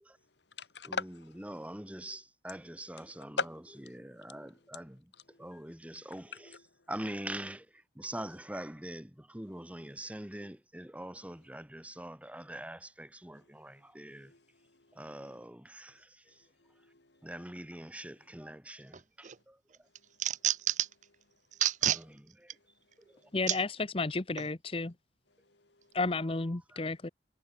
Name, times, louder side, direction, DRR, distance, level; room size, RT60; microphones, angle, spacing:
voice 1, 0.6-1.4 3.4-4.3 5.3-5.6 6.3-6.6 13.3-13.5 14.1-15.4 16.3-17.3 21.0-21.2 23.0-23.3 25.4-26.0, left 4 dB, 80° left, 3.2 m, -42 dB
voice 2, 1.4-3.4 3.9-5.1 5.4-6.6 6.9-14.3 14.9-16.4 17.2-19.6 21.8-22.6 23.1-23.3 26.7-26.8, right 1 dB, 10° right, 1.5 m, -44 dB
sound 1, 18.9-19.4 19.7-21.0 21.5-22.0 22.5-22.6 23.5-23.6 24.4-24.5, right 12 dB, 45° right, 0.6 m, -29 dB
voice 3, 23.3-24.9 25.9-27.1, left 3 dB, 30° left, 0.9 m, -32 dB
head